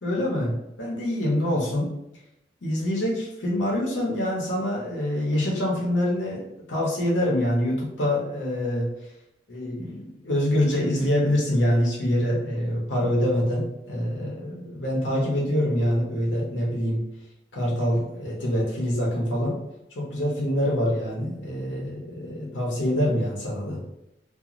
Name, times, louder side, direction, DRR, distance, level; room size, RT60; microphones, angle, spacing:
voice 1, 0.0-1.9 2.6-8.9 9.5-17.0 17.5-19.6 20.0-23.8, left 1 dB, 75° left, -4 dB, 0.7 m, -25 dB
2.5 x 2.1 x 2.9 m, 0.88 s
head